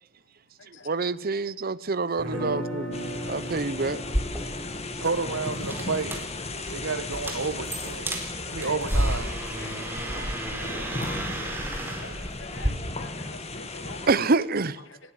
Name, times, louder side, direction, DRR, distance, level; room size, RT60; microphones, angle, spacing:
voice 1, 0.8-3.0 3.3-4.0 6.6-6.7 10.1-10.2 11.2-11.3 12.0-12.1 12.5-12.7 14.1-14.8, right 3 dB, 50° right, 0.8 m, -27 dB
sound 1, 2.2-8.2, equal, 5° left, 4.7 m, -38 dB
sound 2, 2.9-14.1, left 2 dB, 35° left, 2.1 m, -36 dB
sound 3, 4.0-12.7, right 1 dB, 10° right, 4.3 m, -32 dB
voice 2, 5.0-6.2 6.7-8.1 8.5-9.3 10.8-10.9, right 4 dB, 90° right, 1.6 m, -30 dB
voice 3, 10.5-12.1 12.4-14.0, left 3 dB, 65° left, 1.7 m, -46 dB
20.5 x 16.0 x 7.9 m
head